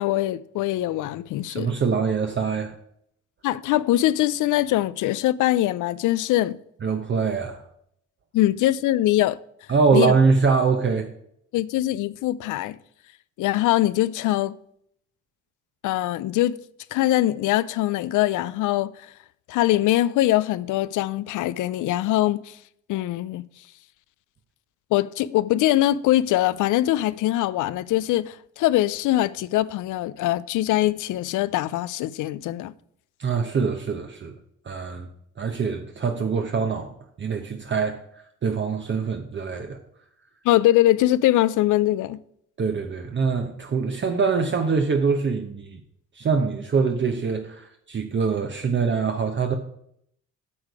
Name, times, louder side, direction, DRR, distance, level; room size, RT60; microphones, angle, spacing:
voice 1, 0.0-1.7 3.4-6.6 8.3-9.4 9.9-10.1 11.5-12.8 13.4-14.5 15.8-16.6 16.9-18.9 19.5-22.6 22.9-23.4 24.9-32.7 40.4-42.2, left 14 dB, 80° left, 0.5 m, -22 dB
voice 2, 1.5-2.7 6.8-7.6 9.7-11.1 33.2-34.4 34.6-35.1 35.4-38.0 38.4-39.8 42.6-45.8 46.1-49.6, right 5 dB, 40° right, 0.9 m, -24 dB
8.6 x 6.5 x 4.8 m
cardioid pair, 90°, 30 cm